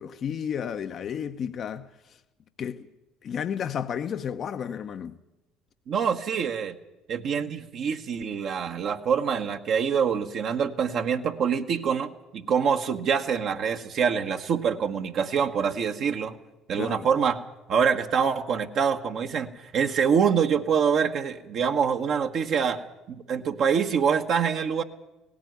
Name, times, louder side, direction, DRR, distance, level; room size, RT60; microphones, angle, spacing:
voice 1, 0.0-2.2 2.6-2.9 3.2-5.2 16.7-17.1, left 8 dB, 50° left, 0.8 m, -32 dB
voice 2, 5.9-6.8 7.1-16.4 16.7-17.4 17.7-19.5 19.7-22.8 23.1-24.8, right 7 dB, 55° right, 1.4 m, -25 dB
18.0 x 16.0 x 9.5 m
hypercardioid pair, 65°, 0 cm